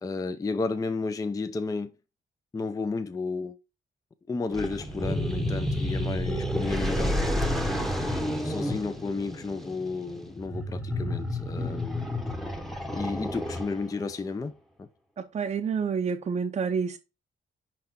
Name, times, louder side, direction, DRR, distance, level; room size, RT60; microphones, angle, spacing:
voice 1, 0.0-1.9 2.5-3.6 4.3-7.7 8.4-12.1 12.9-14.5 14.8-14.9, left 4 dB, 15° left, 0.5 m, -32 dB
sound 1, 4.5-14.0, equal, ahead, 0.9 m, -30 dB
voice 2, 15.2-17.0, right 6 dB, 30° right, 0.6 m, -28 dB
5.9 x 5.4 x 4.3 m
wide cardioid pair, 155°, 21 cm